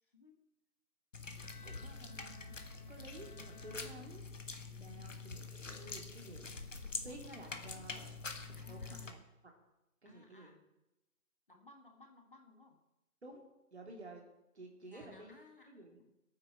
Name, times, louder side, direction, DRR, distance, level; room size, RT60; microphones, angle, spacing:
voice 1, 0.0-0.4 4.6-5.2 6.8-7.5 8.5-9.2 10.0-10.6 11.5-12.8 14.8-16.1, left 3 dB, 35° left, 3 dB, 1.5 m, -61 dB
sound 1, 1.1-9.1, left 4 dB, 55° left, 1.4 m, -46 dB
Bowed string instrument, 1.4-4.7, left 4 dB, 75° left, 1.6 m, -60 dB
voice 2, 1.6-4.4 4.8-6.5 7.0-8.3 8.7-9.2 10.0-10.5 13.2-13.4 13.7-14.2 14.5-15.4 15.7-16.0, right 2 dB, 45° right, 1 dB, 2.7 m, -52 dB
21.0 x 9.1 x 4.4 m, 0.92 s
figure-of-eight pair, 170°, 44 cm